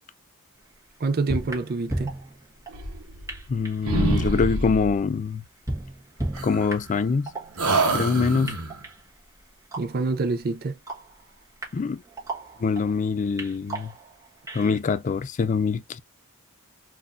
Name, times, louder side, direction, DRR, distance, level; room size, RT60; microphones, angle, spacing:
sound 1, 0.7-0.8 1.3-2.8 3.3-3.8 4.1-5.1 5.4-7.0 7.3-8.1 8.5-10.1 10.5-10.6 10.9-13.0 13.4-14.8, right 1 dB, 15° right, 1.2 m, -35 dB
voice 1, 1.0-2.2 9.8-10.8, right 3 dB, 45° right, 0.5 m, -26 dB
sound 2, 2.7-3.6 3.8-5.0 6.3-7.2 7.6-8.8, right 2 dB, 70° right, 1.0 m, -27 dB
voice 2, 3.5-5.4 6.4-7.3 7.9-8.5 11.7-12.0 12.6-13.9 14.5-16.0, left 5 dB, 35° left, 0.3 m, -24 dB
3.9 x 2.5 x 2.5 m
head